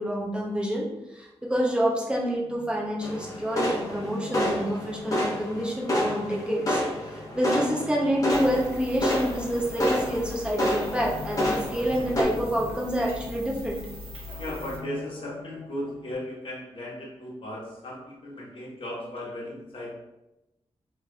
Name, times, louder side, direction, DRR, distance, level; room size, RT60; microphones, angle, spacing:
voice 1, 0.0-6.8 7.1-13.8, equal, 10° right, -3 dB, 0.6 m, -28 dB
sound 1, 2.4-16.1, left 3 dB, 90° left, 1.0 m, -46 dB
sound 2, 3.0-12.2, equal, 30° left, 0.9 m, -29 dB
sound 3, 8.3-14.8, left 3 dB, 50° right, 1.2 m, -41 dB
voice 2, 14.4-19.9, left 1 dB, 50° left, -5 dB, 1.2 m, -36 dB
3.5 x 3.1 x 2.3 m, 0.93 s
wide cardioid pair, 105°, 11 cm